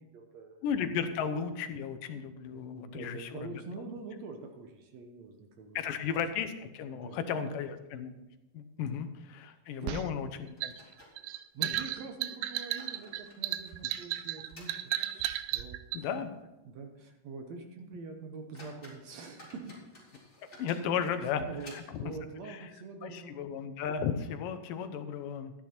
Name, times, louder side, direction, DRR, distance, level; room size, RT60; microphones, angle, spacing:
voice 1, 0.0-0.7 2.3-6.0 6.9-7.6 8.8-9.0 9.4-10.1 11.5-16.1 16.6-19.8 21.5-21.7 22.0-23.4, right 4 dB, 65° right, 4 dB, 2.0 m, -45 dB
voice 2, 0.6-3.6 5.8-8.1 8.5-10.7 11.6-11.7 15.9-16.3 20.6-21.5 21.7-21.8 22.5-22.7 23.0-25.5, left 7 dB, 90° left, 9 dB, 2.6 m, -34 dB
sound 1, 3.8-4.8 5.1-5.2 5.6-5.7 6.3-6.8 7.1-7.2 7.8-8.0 8.3-8.5 9.8-9.9 10.6-11.8 12.4-15.6 16.0-16.1 16.6-16.7 17.2-17.3 17.9-18.0 18.3-22.2, left 1 dB, 20° left, 3.8 m, -55 dB
sound 2, 9.9-16.0, right 14 dB, 90° right, 2.2 m, -34 dB
13.0 x 10.0 x 4.4 m, 1.0 s
omnidirectional pair, 3.8 m